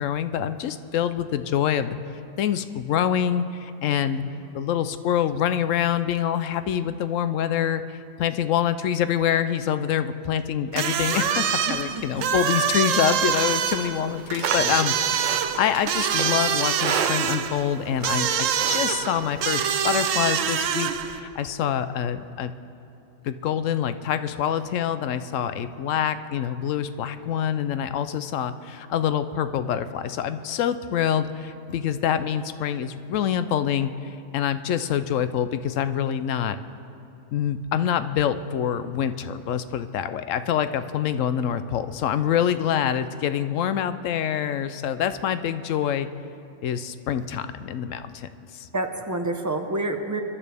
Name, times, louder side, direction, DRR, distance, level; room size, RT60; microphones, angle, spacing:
voice 1, 0.0-2.0 2.4-4.2 4.5-22.5 23.2-36.6 37.3-46.1 46.6-48.7, left 9 dB, 80° left, 11 dB, 1.0 m, -26 dB
sound 1, 10.7-21.2, right 8 dB, 80° right, 1.0 m, -25 dB
voice 2, 11.7-12.3 48.7-50.2, right 2 dB, 15° right, 5 dB, 0.7 m, -28 dB
Livestock farm animals working animals, 14.0-19.7, right 6 dB, 50° right, 0.6 m, -33 dB
25.0 x 11.0 x 3.5 m, 3.0 s
omnidirectional pair, 1.3 m